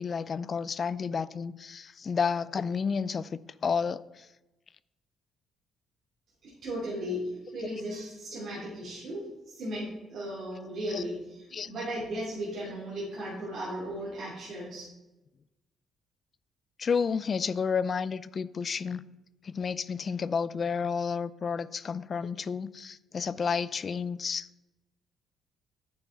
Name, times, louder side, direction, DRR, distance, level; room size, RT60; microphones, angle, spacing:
voice 1, 0.0-4.3 10.9-11.0 11.5-11.7 16.8-19.0 19.4-24.5, left 6 dB, 35° left, 17 dB, 0.3 m, -31 dB
voice 2, 6.4-14.8, equal, 50° right, -7 dB, 3.1 m, -36 dB
9.5 x 6.9 x 4.6 m, 1.0 s
cardioid pair, 150°, 0 cm